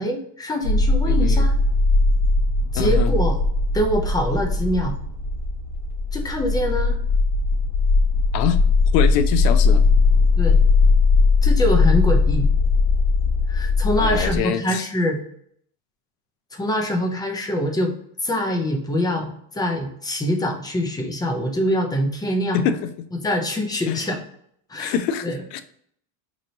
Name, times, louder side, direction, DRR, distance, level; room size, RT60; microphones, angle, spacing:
voice 1, 0.0-1.5 2.7-3.4 3.7-4.9 6.1-7.0 10.4-10.6 11.4-12.5 13.5-15.2 16.5-17.9 18.2-22.7 23.2-24.2 24.7-24.9 25.2-25.4, equal, 10° left, 3 dB, 0.4 m, -24 dB
sound 1, 0.6-14.4, left 3 dB, 65° left, 1.2 m, -19 dB
voice 2, 1.1-1.5 2.7-3.1 8.3-8.6 8.9-9.9 14.0-14.9 22.5-22.9 23.9-24.1 24.8-25.6, left 8 dB, 85° left, 11 dB, 0.6 m, -24 dB
3.1 x 2.6 x 3.8 m, 0.65 s
supercardioid pair, 120°, 48 cm